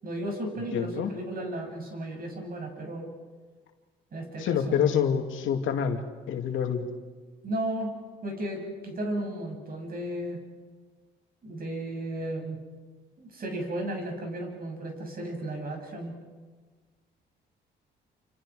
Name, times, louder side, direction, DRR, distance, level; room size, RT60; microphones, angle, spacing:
voice 1, 0.0-3.1 4.1-4.9 7.4-7.9 8.2-10.4 11.4-12.6 13.2-16.1, right 1 dB, 45° right, 2 dB, 7.5 m, -34 dB
voice 2, 0.7-1.1 4.4-6.0 6.3-6.9, left 8 dB, 85° left, 4 dB, 2.5 m, -27 dB
28.5 x 26.5 x 5.0 m, 1.4 s
cardioid pair, 90°, 20 cm